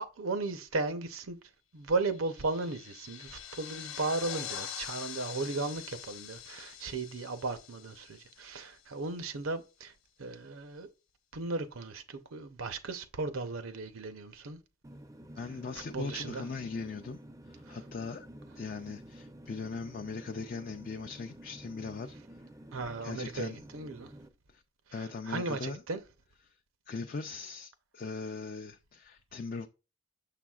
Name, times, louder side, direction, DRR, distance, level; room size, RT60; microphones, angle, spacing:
voice 1, 0.0-1.4 1.7-9.9 10.2-10.9 11.3-14.6 15.9-16.5 17.7-17.8 22.7-24.1 25.0-26.0, right 3 dB, 80° right, 0.7 m, -36 dB
sound 1, 2.1-8.9, left 10 dB, 80° left, 0.8 m, -44 dB
sound 2, 14.8-24.3, right 1 dB, 15° right, 0.4 m, -51 dB
voice 2, 15.3-17.2 17.4-18.3 18.6-22.2 23.0-23.6 24.5-24.6 24.9-25.8 26.5-26.6 26.9-29.7, left 4 dB, 45° left, 0.4 m, -40 dB
6.8 x 5.8 x 2.4 m
head